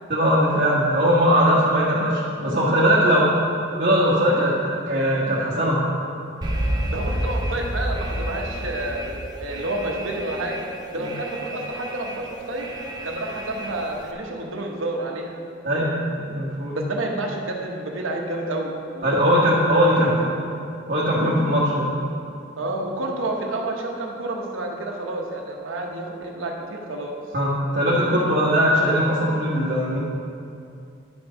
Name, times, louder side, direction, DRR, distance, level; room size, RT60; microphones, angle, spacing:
voice 1, 0.1-3.2 3.8-5.9 11.0-11.1 15.6-16.0 16.3-16.8 19.0-20.1 20.9-21.9 27.3-30.0, equal, 50° right, -7 dB, 1.6 m, -20 dB
voice 2, 3.0-3.4 6.9-10.6 10.9-12.7 13.0-15.4 16.7-19.5 19.9-20.4 22.6-27.2, right 2 dB, 85° right, 1 dB, 1.2 m, -29 dB
Alarm, 6.4-14.1, equal, 20° right, 0.8 m, -30 dB
10.5 x 6.3 x 5.1 m, 2.6 s
head